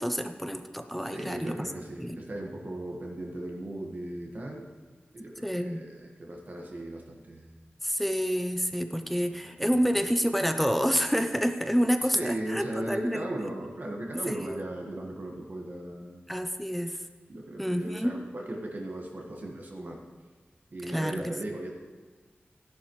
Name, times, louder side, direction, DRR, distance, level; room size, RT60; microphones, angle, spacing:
voice 1, 0.0-1.6 2.0-2.2 5.4-5.8 7.8-13.5 14.3-14.6 16.3-17.0 17.6-18.1 20.9-21.4, equal, 5° left, 7 dB, 0.6 m, -28 dB
voice 2, 1.0-4.7 5.1-7.6 9.4-10.1 12.0-16.3 17.3-20.0 20.7-21.7, right 1 dB, 50° right, -1 dB, 1.5 m, -37 dB
14.5 x 11.0 x 3.2 m, 1.4 s
wide cardioid pair, 100°, 4 cm